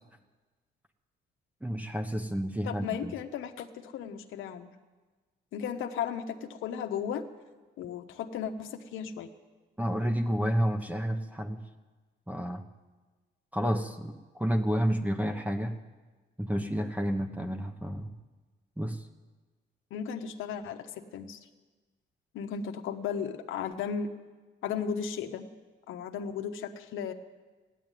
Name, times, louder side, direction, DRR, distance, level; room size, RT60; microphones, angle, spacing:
voice 1, 1.6-3.1 9.8-11.6 12.3-12.6 13.5-15.8 16.4-18.1 18.8-19.1, equal, 5° right, 6 dB, 1.1 m, -30 dB
voice 2, 2.6-4.7 5.5-7.2 7.8-9.3 19.9-21.4 22.3-24.1 24.6-25.5 25.9-27.1, left 7 dB, 85° left, 5 dB, 1.0 m, -35 dB
15.5 x 10.0 x 9.2 m, 1.3 s
cardioid pair, 90°, 20 cm